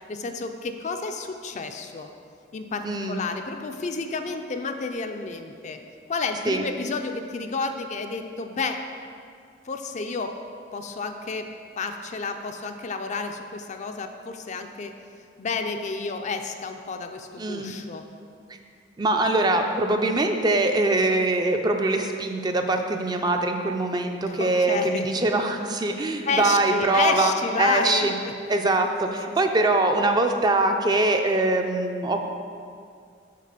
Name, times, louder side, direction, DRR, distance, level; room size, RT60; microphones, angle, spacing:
voice 1, 0.1-2.1 2.5-5.8 6.1-8.8 9.7-10.4 10.7-11.5 11.8-14.9 15.4-18.0 24.3-25.3 26.3-28.1 29.0-29.6, left 4 dB, 40° left, 6 dB, 0.4 m, -30 dB
voice 2, 2.8-3.2 6.5-6.7 17.4-17.7 19.0-27.3 27.6-28.1 28.5-32.3, right 2 dB, 25° right, 5 dB, 0.4 m, -23 dB
6.7 x 4.2 x 6.6 m, 2.3 s
head